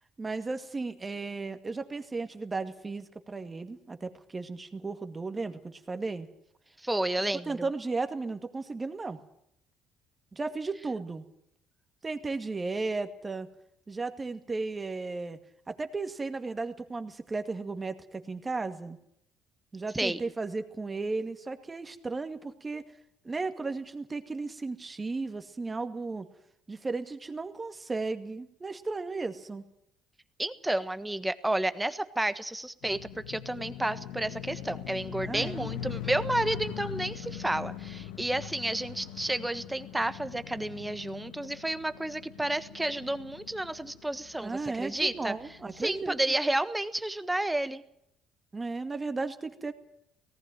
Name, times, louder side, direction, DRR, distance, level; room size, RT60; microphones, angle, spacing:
voice 1, 0.2-6.3 7.5-9.2 10.3-11.2 12.0-13.5 13.9-15.4 15.7-19.0 19.7-22.9 23.2-26.3 26.7-29.6 35.2-35.7 44.4-46.2 48.5-49.7, right 3 dB, 25° right, 8 dB, 2.1 m, -35 dB
voice 2, 6.8-7.6 19.9-20.2 30.4-45.3 45.8-47.8, right 1 dB, 10° right, 12 dB, 1.3 m, -31 dB
sound 1, 32.8-46.2, left 10 dB, 90° left, 1.4 m, -42 dB
18.5 x 15.0 x 9.4 m, 0.76 s
supercardioid pair, 80°, 0 cm